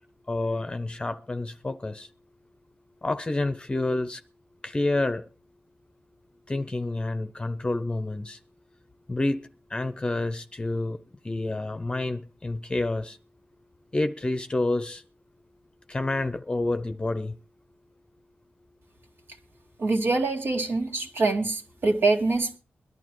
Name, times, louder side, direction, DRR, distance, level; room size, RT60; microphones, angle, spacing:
voice 1, 0.3-2.1 3.0-4.2 4.6-5.3 6.5-8.4 9.1-11.0 11.2-13.2 13.9-15.0 15.9-17.3, left 2 dB, 25° left, 0.7 m, -28 dB
voice 2, 19.8-22.6, right 3 dB, 70° right, 2.4 m, -24 dB
22.0 x 11.5 x 3.1 m
wide cardioid pair, 100°, 4 cm